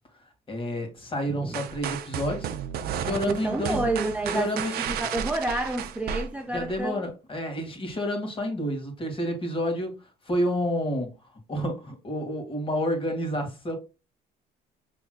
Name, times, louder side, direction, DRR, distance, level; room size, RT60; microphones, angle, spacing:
voice 1, 0.5-2.5 3.0-3.9 4.3-4.7 6.5-10.0 10.2-11.1 11.5-13.7, equal, 30° left, 1.8 m, -29 dB
sound 1, 1.5-6.8, right 8 dB, 65° right, 0.6 m, -33 dB
voice 2, 3.0-7.0, right 2 dB, 5° right, 0.4 m, -29 dB
6.1 x 3.4 x 2.2 m
cardioid pair, 110°, 17 cm